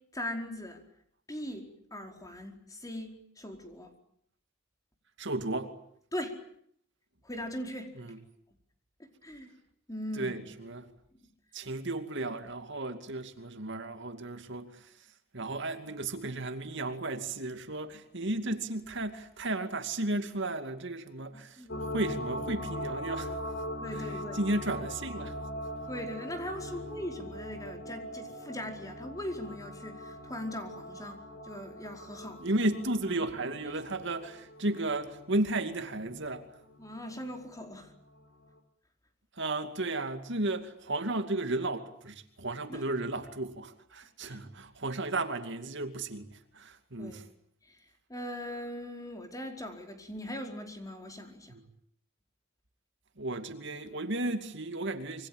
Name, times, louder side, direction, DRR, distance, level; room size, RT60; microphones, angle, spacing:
voice 1, 0.1-0.8 1.3-3.9 6.1-6.4 7.2-7.9 9.0-9.5 9.9-10.4 21.2-22.0 23.8-24.4 25.9-32.5 36.8-37.9 42.7-42.8 44.3-44.4 47.0-47.2 47.7-47.8 48.1-51.5, left 1 dB, 20° left, 4.8 m, -40 dB
voice 2, 5.2-5.8 8.0-8.2 10.2-10.9 11.5-14.9 15.3-21.6 21.9-23.4 24.0-24.1 24.3-25.4 32.4-36.5 39.4-47.2 51.5-51.6 53.2-55.3, right 2 dB, 65° right, 2.5 m, -34 dB
sound 1, 21.7-37.4 37.8-37.9, left 1 dB, 60° left, 4.3 m, -41 dB
27.0 x 24.5 x 8.9 m
head